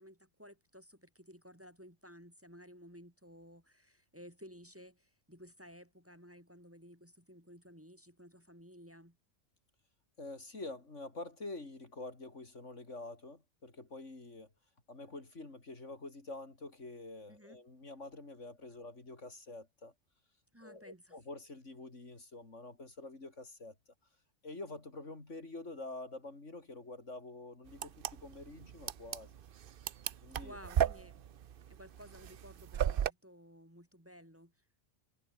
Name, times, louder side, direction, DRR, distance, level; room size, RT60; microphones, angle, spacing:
voice 1, 0.0-9.2 17.3-17.6 20.5-21.2 30.4-31.2 31.7-34.5, equal, 10° right, 4.0 m, -55 dB
voice 2, 10.2-14.5 14.9-19.9 20.6-23.8 24.4-29.3 30.2-30.6, left 2 dB, 60° left, 4.2 m, -47 dB
sound 1, 27.7-33.1, right 9 dB, 50° right, 0.7 m, -35 dB
omnidirectional pair, 1.4 m